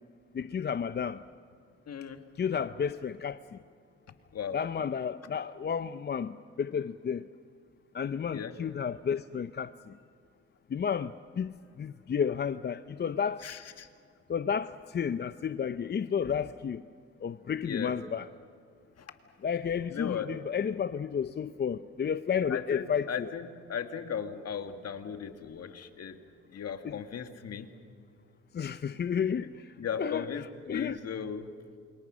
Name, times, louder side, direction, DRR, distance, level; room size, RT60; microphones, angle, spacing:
voice 1, 0.3-1.2 2.4-3.6 4.5-7.2 7.9-9.9 10.7-11.1 11.4-13.4 14.3-16.8 17.2-18.3 19.4-23.3 26.8-27.0 28.5-29.6 30.0-31.0, left 7 dB, 35° left, 0.6 m, -32 dB
voice 2, 1.9-2.2 4.3-4.6 8.3-8.6 13.4-13.9 17.6-17.9 19.9-20.3 22.5-26.2 26.5-27.7 29.8-31.5, left 7 dB, 55° left, 1.9 m, -37 dB
28.0 x 23.5 x 6.3 m
cardioid pair, 90°, 30 cm